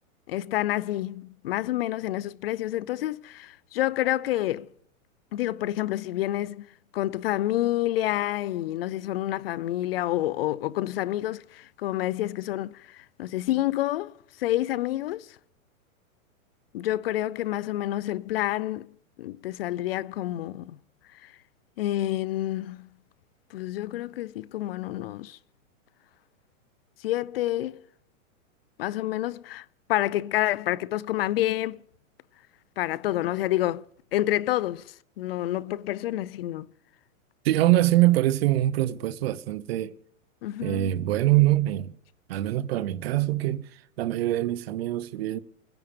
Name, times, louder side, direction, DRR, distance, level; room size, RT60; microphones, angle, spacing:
voice 1, 0.3-4.7 5.3-6.7 6.9-15.4 16.7-18.9 19.2-20.8 21.2-21.3 21.8-22.9 23.5-25.4 27.0-27.8 28.8-31.8 32.8-33.9 34.1-36.7 40.4-40.9, left 14 dB, 45° left, 0.6 m, -28 dB
voice 2, 37.4-40.0 40.6-41.9 42.3-45.4, right 15 dB, 45° right, 0.9 m, -24 dB
25.0 x 10.5 x 5.1 m
hypercardioid pair, 160°, 41 cm